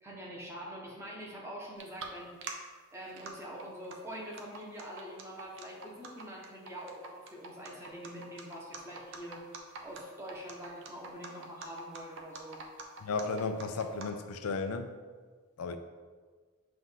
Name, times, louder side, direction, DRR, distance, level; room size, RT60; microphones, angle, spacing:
voice 1, 0.0-2.4 2.9-9.5 9.8-12.6, equal, 10° right, -3 dB, 1.0 m, -45 dB
sound 1, 1.8-2.1 2.4-2.5 3.0-3.3 3.6-14.0, right 4 dB, 55° right, 0.7 m, -44 dB
voice 2, 13.0-14.9 15.6-15.8, left 4 dB, 90° left, 8 dB, 0.5 m, -34 dB
7.7 x 2.6 x 5.6 m, 1.5 s
head